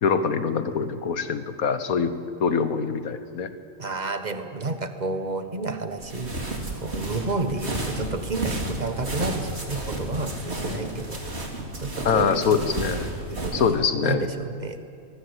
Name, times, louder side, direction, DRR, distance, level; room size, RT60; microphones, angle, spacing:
voice 1, 0.0-2.1 2.4-3.5 12.0-13.1 13.5-14.3, left 6 dB, 80° left, 11 dB, 1.7 m, -24 dB
voice 2, 3.8-6.3 6.8-11.2 11.8-12.7 13.3-14.8, right 3 dB, 30° right, 8 dB, 1.5 m, -30 dB
sound 1, 6.0-13.7, right 2 dB, 45° right, 3.3 m, -32 dB
sound 2, 8.0-13.3, left 7 dB, 60° left, 1.6 m, -44 dB
24.0 x 20.5 x 8.2 m, 2.6 s
omnidirectional pair, 1.5 m